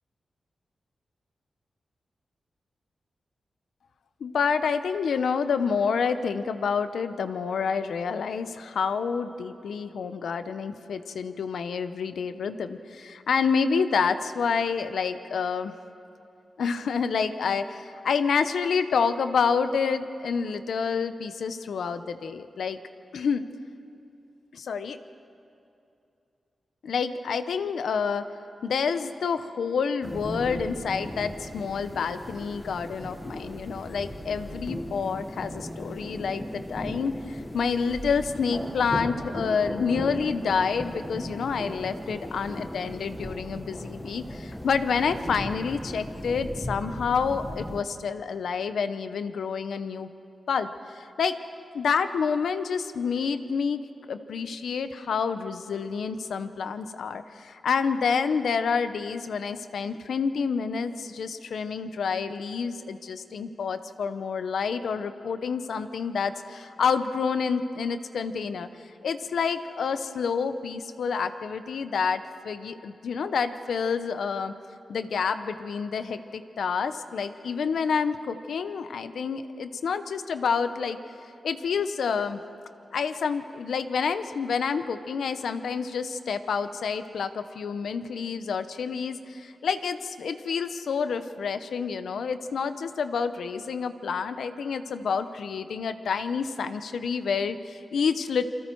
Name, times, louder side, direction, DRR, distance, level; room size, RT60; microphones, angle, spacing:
voice 1, 4.2-15.7 16.6-22.8 23.1-23.4 24.5-25.0 26.8-28.3 28.6-50.1 50.5-51.4 51.7-53.8 54.1-68.7 69.0-74.5 74.9-81.0 81.4-82.4 82.9-98.4, left 6 dB, 90° left, 10 dB, 0.9 m, -28 dB
sound 1, 30.0-47.8, equal, 10° left, 1.4 m, -37 dB
28.5 x 23.0 x 4.7 m, 2.7 s
wide cardioid pair, 100°, 0 cm